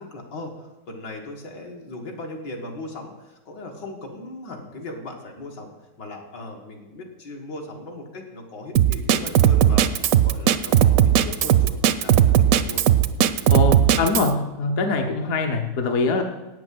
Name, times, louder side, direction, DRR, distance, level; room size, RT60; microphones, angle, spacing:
voice 1, 0.0-5.7 6.0-12.8, left 2 dB, 75° left, 1 dB, 2.4 m, -38 dB
Drum kit, 8.8-14.3, right 11 dB, 70° right, 0.8 m, -17 dB
voice 2, 13.5-16.2, left 3 dB, 55° left, 4 dB, 1.2 m, -23 dB
8.9 x 7.6 x 7.7 m, 1.1 s
omnidirectional pair, 1.9 m